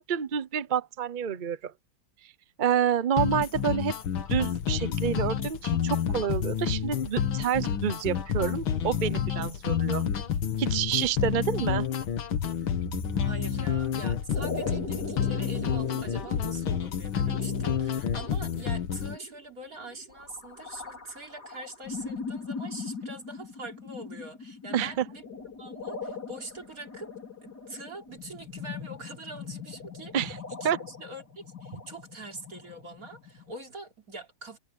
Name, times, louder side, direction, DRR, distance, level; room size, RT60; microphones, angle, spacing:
voice 1, 0.0-1.7 2.2-2.3 2.6-3.9 4.3-10.1 10.6-11.9 24.7-25.0 30.1-30.4 30.6-30.8, right 8 dB, 70° right, 0.4 m, -28 dB
sound 1, 3.2-19.2, left 8 dB, 80° left, 2.2 m, -29 dB
sound 2, 12.8-15.0, equal, 15° left, 6.6 m, -41 dB
voice 2, 13.2-25.2 25.6-27.1 27.4-34.6, right 2 dB, 45° right, 4.4 m, -44 dB
sound 3, 14.3-33.5, left 3 dB, 50° left, 5.5 m, -41 dB
omnidirectional pair, 2.2 m